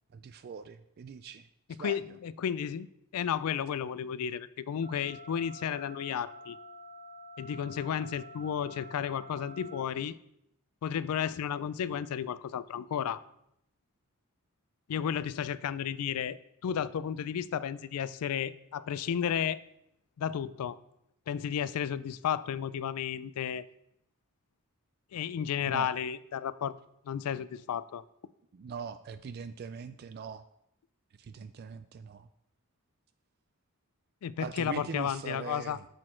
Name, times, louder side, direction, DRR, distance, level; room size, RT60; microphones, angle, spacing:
voice 1, 0.1-2.2 25.7-25.9 28.5-30.4 31.2-32.3 34.4-35.9, right 6 dB, 45° right, 11 dB, 0.3 m, -42 dB
voice 2, 1.8-2.9 3.1-6.6 7.4-10.2 10.8-13.2 14.9-19.6 20.2-20.8 21.3-23.6 25.1-26.7 27.0-28.0 34.2-35.8, left 8 dB, 80° left, 18 dB, 0.3 m, -33 dB
sound 1, 4.8-9.8, equal, 40° left, 1.0 m, -48 dB
6.4 x 6.3 x 4.4 m, 0.78 s
head